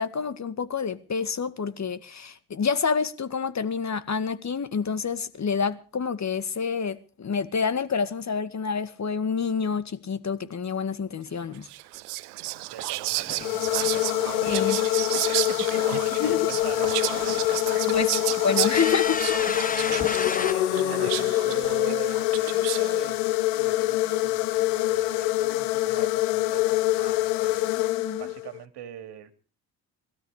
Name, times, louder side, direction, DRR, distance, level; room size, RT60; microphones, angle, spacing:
voice 1, 0.0-11.7 14.5-14.8 16.2-16.5 17.9-18.1 18.4-19.2 27.8-28.3, left 6 dB, 40° left, 2.0 m, -28 dB
Whispering, 11.6-23.1, right 20 dB, 90° right, 0.8 m, -32 dB
voice 2, 12.4-14.8 15.1-15.2 15.5-16.9 17.3-17.6 19.5-20.2 20.7-27.8 28.2-29.3, right 11 dB, 65° right, 2.7 m, -42 dB
sound 1, 12.8-12.9 13.2-14.5 16.0-16.6 16.9-17.6 18.0-18.1 18.7-20.5, left 4 dB, 20° left, 0.9 m, -33 dB
sound 2, 13.4-28.6, left 17 dB, 80° left, 1.0 m, -25 dB
21.5 x 13.0 x 5.0 m
hypercardioid pair, 60°, 44 cm